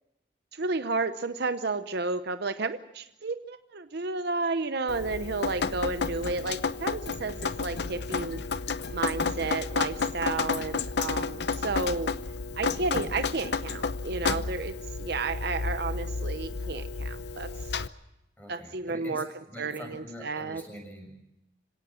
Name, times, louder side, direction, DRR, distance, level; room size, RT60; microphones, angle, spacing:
voice 1, 0.5-8.4 8.9-12.1 12.6-17.5 18.5-19.3 19.6-20.6, right 3 dB, 60° right, 10 dB, 0.8 m, -32 dB
Drip, 4.9-17.9, left 4 dB, 60° left, 0.8 m, -31 dB
voice 2, 18.4-21.2, equal, 10° left, 2 dB, 6.9 m, -44 dB
26.0 x 17.5 x 7.6 m, 0.90 s
head